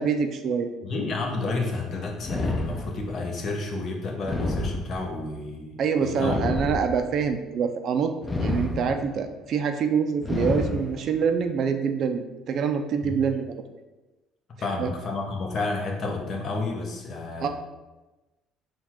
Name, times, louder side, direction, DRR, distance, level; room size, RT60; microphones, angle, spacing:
voice 1, 0.0-0.7 5.8-8.1 8.4-13.6 14.8-14.9 17.4-17.5, right 6 dB, 60° right, 7 dB, 0.4 m, -25 dB
voice 2, 0.8-6.5 13.0-13.1 14.6-17.5, left 3 dB, 50° left, 1 dB, 0.9 m, -31 dB
sound 1, 2.2-3.3 4.2-5.3 6.2-7.3 8.2-9.3 10.2-11.3, left 2 dB, 20° left, 0.5 m, -29 dB
4.3 x 2.3 x 4.2 m, 1.1 s
supercardioid pair, 85°, 0 cm